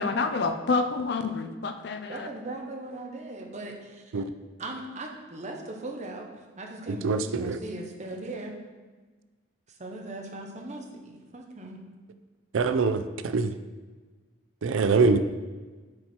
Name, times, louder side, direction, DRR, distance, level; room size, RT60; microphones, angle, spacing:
voice 1, 0.0-2.3, left 4 dB, 55° left, 8 dB, 0.5 m, -28 dB
voice 2, 2.1-4.1 4.6-6.3 6.6-8.5 9.8-11.8, right 2 dB, 35° right, 2 dB, 0.8 m, -39 dB
voice 3, 6.9-7.6 12.5-13.6 14.6-15.2, right 4 dB, 85° right, 10 dB, 0.4 m, -24 dB
7.7 x 4.5 x 4.3 m, 1.3 s
head